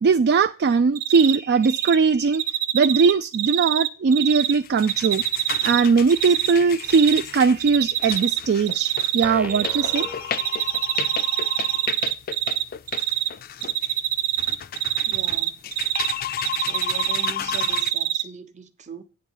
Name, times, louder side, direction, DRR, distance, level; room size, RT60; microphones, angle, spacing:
voice 1, 0.0-2.4 2.7-5.2 5.6-10.7, right 5 dB, 50° right, 0.4 m, -20 dB
Cricket, 0.9-1.4 1.6-1.9 2.3-4.5 4.8-6.5 6.8-7.2 7.6-8.4 8.7-10.1 10.3-12.6 12.9-13.3 13.6-16.1 16.4-18.2, right 13 dB, 75° right, 0.7 m, -24 dB
sound 1, 4.3-17.9, left 10 dB, 40° left, 0.4 m, -33 dB
sound 2, 9.2-11.1, equal, 5° right, 0.6 m, -39 dB
voice 2, 15.1-15.7 16.6-19.0, right 4 dB, 35° right, 0.9 m, -40 dB
9.5 x 3.8 x 7.1 m
head